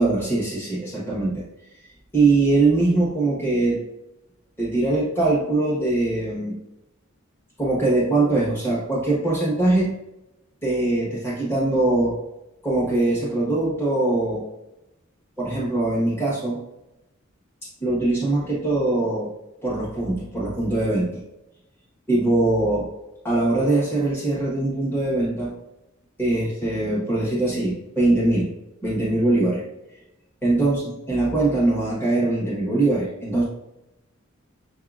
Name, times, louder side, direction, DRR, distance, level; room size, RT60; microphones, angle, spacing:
voice 1, 0.0-1.4 2.1-3.8 4.6-6.6 7.6-10.0 10.6-12.2 12.6-14.5 15.4-16.6 17.8-19.3 19.6-21.2 22.1-22.9 23.2-25.5 26.2-28.5 28.8-29.6 30.4-33.4, right 2 dB, 10° left, -7 dB, 1.2 m, -22 dB
5.9 x 2.8 x 2.4 m, 0.91 s
head